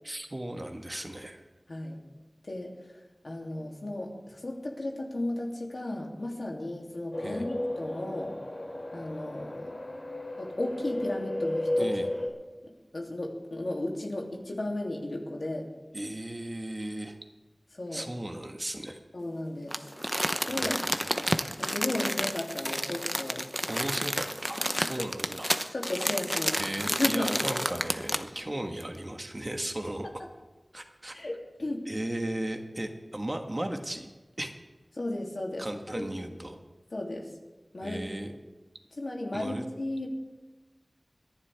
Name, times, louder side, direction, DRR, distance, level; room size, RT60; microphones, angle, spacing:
voice 1, 0.0-1.4 7.2-7.5 11.8-12.1 15.9-17.2 17.9-19.0 20.5-21.1 23.7-25.5 26.6-30.1 30.7-31.1 31.8-34.1 34.4-34.5 35.6-36.6 37.8-38.4 39.3-39.6, right 1 dB, 35° right, 4 dB, 1.4 m, -36 dB
voice 2, 1.7-2.0 2.4-2.7 3.2-8.3 8.9-9.7 10.4-11.9 12.9-15.7 17.7-18.0 19.1-19.9 20.5-20.8 21.6-23.4 24.7-24.9 25.4-26.6 27.0-27.9 31.1-31.9 35.0-35.6 35.9-36.0 36.9-37.3 37.7-38.0 39.0-40.1, left 1 dB, 75° left, -1 dB, 2.7 m, -34 dB
sound 1, 7.1-12.3, left 1 dB, 60° left, 3.0 m, -33 dB
Crumpling crinkling, 19.7-28.4 28.8-28.9, equal, 5° right, 0.8 m, -30 dB
28.0 x 11.0 x 3.5 m, 1.2 s
wide cardioid pair, 55°, 0 cm